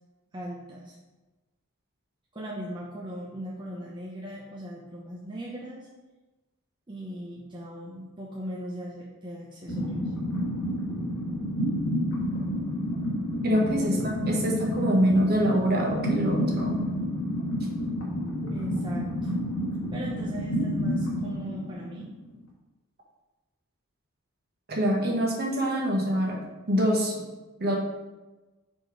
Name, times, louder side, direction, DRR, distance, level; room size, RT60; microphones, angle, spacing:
voice 1, 0.3-1.0 2.3-5.9 6.9-10.1 13.8-14.1 18.5-19.3 19.9-22.1, equal, 20° right, -4 dB, 0.7 m, -39 dB
sound 1, 9.7-22.3, equal, 60° left, 1.4 m, -30 dB
voice 2, 13.4-16.8 24.7-26.4 26.7-27.2 27.6-27.8, equal, 45° right, -1 dB, 1.3 m, -25 dB
5.0 x 4.4 x 4.7 m, 1.1 s
head